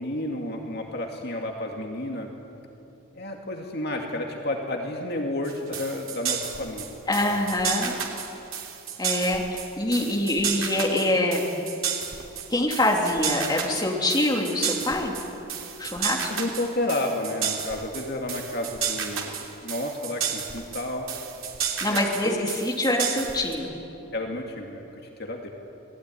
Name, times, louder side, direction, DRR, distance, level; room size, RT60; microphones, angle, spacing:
voice 1, 0.0-2.3 3.1-7.4 16.3-21.1 21.9-22.5 24.1-24.8 25.2-25.5, left 1 dB, 50° left, 1 dB, 2.4 m, -31 dB
sound 1, 5.4-23.5, right 8 dB, 75° right, 3.4 m, -32 dB
voice 2, 7.1-8.0 9.0-9.4 9.8-11.5 12.5-15.2 15.8-16.3 21.8-23.7, left 1 dB, 20° left, -1 dB, 3.0 m, -25 dB
28.0 x 20.0 x 9.9 m, 3.0 s
head